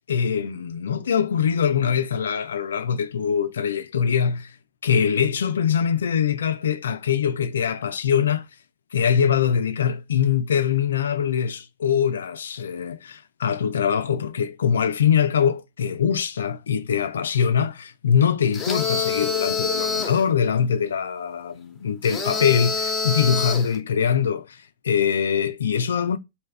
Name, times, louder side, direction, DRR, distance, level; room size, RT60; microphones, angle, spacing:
voice 1, 0.1-4.5 4.8-8.5 8.9-26.2, left 7 dB, 80° left, 0.4 m, -23 dB
sound 1, 18.5-20.2 22.0-23.8, left 5 dB, 20° left, 1.0 m, -26 dB
3.3 x 2.7 x 3.2 m
hypercardioid pair, 100°, 0 cm